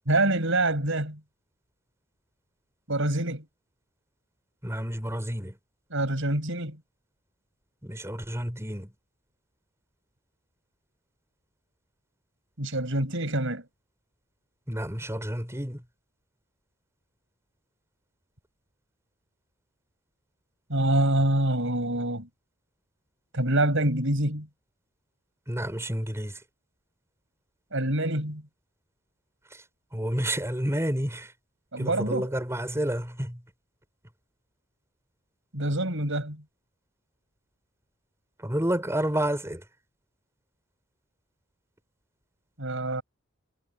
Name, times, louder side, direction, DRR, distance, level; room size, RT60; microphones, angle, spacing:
voice 1, 0.1-1.2 2.9-3.4 5.9-6.8 12.6-13.6 20.7-22.3 23.3-24.5 27.7-28.4 31.7-32.3 35.5-36.4 42.6-43.0, right 1 dB, 60° right, 7.9 m, -26 dB
voice 2, 4.6-5.6 7.8-8.9 14.7-15.8 25.5-26.4 29.5-29.6 29.9-31.3 31.8-33.4 38.4-39.6, right 1 dB, 10° right, 6.9 m, -30 dB
head